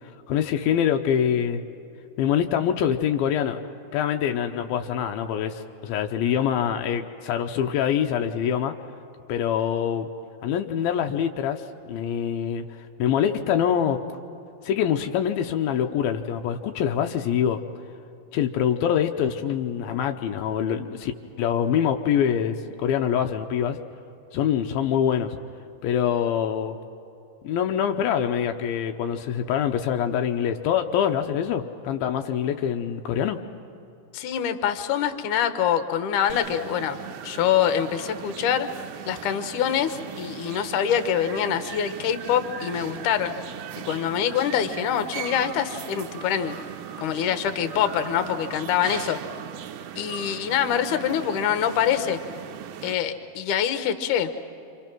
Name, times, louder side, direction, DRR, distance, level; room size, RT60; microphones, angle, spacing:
voice 1, 0.3-1.6 2.2-3.6 3.9-8.7 9.3-10.1 10.4-12.7 13.0-14.0 14.6-17.6 18.3-21.1 21.4-23.8 24.3-25.4 25.8-26.8 27.4-33.4, left 9 dB, 85° left, 5 dB, 2.6 m, -24 dB
voice 2, 34.1-37.0 37.2-38.7 39.1-43.3 43.8-46.6 47.0-49.2 50.0-52.2 52.8-54.3, left 9 dB, 65° left, 9 dB, 2.4 m, -25 dB
sound 1, 36.3-52.9, right 10 dB, 75° right, 2.2 m, -38 dB
28.0 x 26.0 x 6.1 m, 2.9 s
omnidirectional pair, 4.3 m